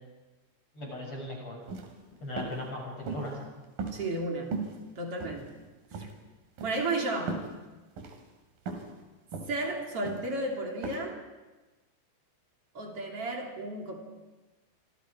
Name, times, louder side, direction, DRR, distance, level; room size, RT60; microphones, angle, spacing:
voice 1, 0.7-1.6 2.2-3.4, left 1 dB, 25° left, -1 dB, 7.2 m, -38 dB
sound 1, 1.6-1.9 2.4-2.6 3.1-3.4 3.8-4.3 4.5-4.8 5.2-5.7 5.9-6.1 6.6-6.8 7.3-7.5 8.0-8.2 8.7-8.9 9.3-9.6 10.0-10.3 10.8-11.0, right 4 dB, 50° right, 4.0 m, -36 dB
voice 2, 3.9-4.6 4.9-5.5 5.9-6.1 6.6-7.5 9.5-11.2 12.7-14.0, right 2 dB, 35° right, 1 dB, 3.1 m, -33 dB
29.0 x 25.0 x 5.0 m, 1.2 s
omnidirectional pair, 5.7 m